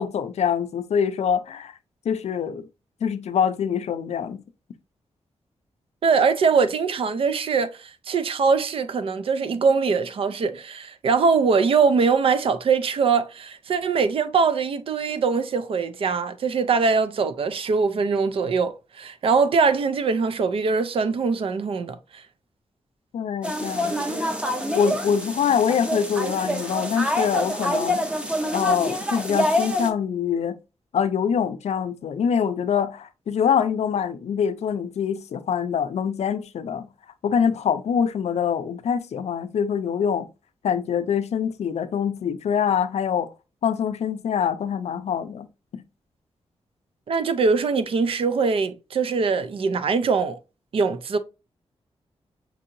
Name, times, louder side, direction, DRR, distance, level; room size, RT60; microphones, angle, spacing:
voice 1, 0.0-1.7 2.1-2.7 3.0-4.4 23.1-24.2 24.7-28.0 28.5-30.6 30.9-36.9 37.2-40.3 40.6-43.3 43.6-45.5 45.7-45.8, left 7 dB, 85° left, 0.5 m, -24 dB
voice 2, 6.0-22.0 47.1-50.4 50.7-51.2, right 5 dB, 60° right, 0.4 m, -22 dB
sound 1, 23.4-29.9, left 1 dB, 10° right, 0.6 m, -26 dB
6.0 x 2.8 x 2.5 m
wide cardioid pair, 170°, 11 cm